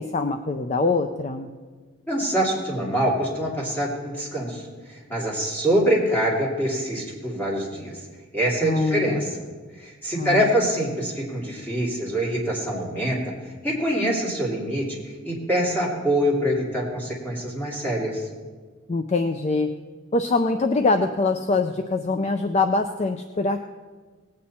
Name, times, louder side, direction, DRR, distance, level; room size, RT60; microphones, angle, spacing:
voice 1, 0.0-1.5 8.6-9.3 10.2-10.5 18.9-19.7 20.1-23.6, left 3 dB, 30° left, 7 dB, 0.4 m, -23 dB
voice 2, 2.1-4.6 4.9-7.9 8.3-9.2 9.8-13.2 13.6-18.3, equal, 10° left, -4 dB, 2.8 m, -24 dB
18.5 x 8.6 x 4.2 m, 1.4 s
head